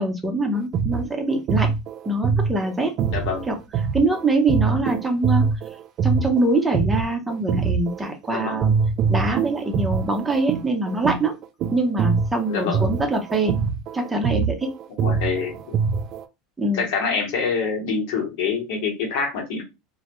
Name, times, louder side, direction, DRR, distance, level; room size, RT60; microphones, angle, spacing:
voice 1, 0.0-1.7 2.1-2.9 3.5-3.6 3.9-5.4 6.0-8.7 9.1-11.4 11.7-13.6 13.9-14.7 16.6-16.8, right 2 dB, 10° right, 2 dB, 0.7 m, -23 dB
sound 1, 0.5-8.3 8.6-16.2, right 6 dB, 50° right, 0.3 m, -24 dB
voice 2, 3.1-3.5 8.3-8.6 12.5-12.8 15.0-15.8 16.7-19.6, left 5 dB, 70° left, 2 dB, 0.9 m, -26 dB
2.1 x 2.1 x 2.9 m, 0.24 s
supercardioid pair, 100°, 0 cm